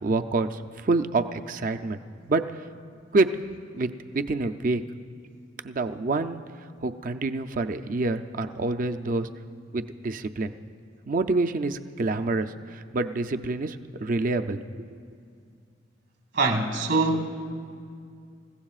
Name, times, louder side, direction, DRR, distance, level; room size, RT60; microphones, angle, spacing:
voice 1, 0.0-2.0 2.3-2.4 3.1-3.3 3.7-4.8 5.6-6.4 6.8-9.3 9.7-10.5 11.1-15.0, right 3 dB, 45° right, 0.5 m, -27 dB
voice 2, 16.3-17.3, right 3 dB, 70° right, 1.5 m, -23 dB
28.0 x 15.5 x 2.4 m
head